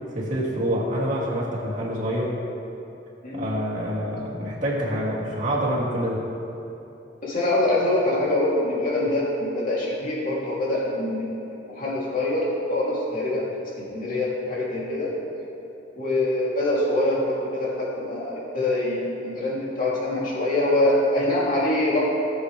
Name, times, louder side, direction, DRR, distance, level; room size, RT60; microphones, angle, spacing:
voice 1, 0.1-2.3 3.3-6.2, equal, 40° right, -6 dB, 2.5 m, -26 dB
voice 2, 7.2-11.3 11.7-13.5 13.8-15.1 15.9-22.0, left 1 dB, 45° left, -7 dB, 2.9 m, -24 dB
19.0 x 7.7 x 3.3 m, 2.9 s
head